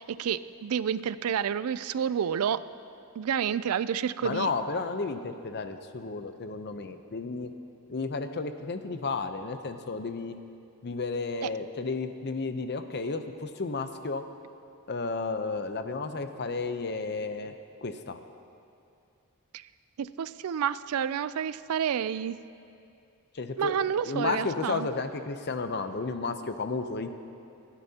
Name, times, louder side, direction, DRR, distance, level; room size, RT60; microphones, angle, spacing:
voice 1, 0.0-2.6 3.2-4.5 11.4-11.5 19.5-19.7 20.0-22.4 23.6-24.9, right 8 dB, 75° right, 16 dB, 0.4 m, -29 dB
voice 2, 4.2-7.5 7.9-10.3 10.8-14.2 14.9-17.5 17.8-18.2 23.3-23.7 24.0-27.1, left 4 dB, 50° left, 8 dB, 0.7 m, -32 dB
29.0 x 10.0 x 2.9 m, 2.6 s
head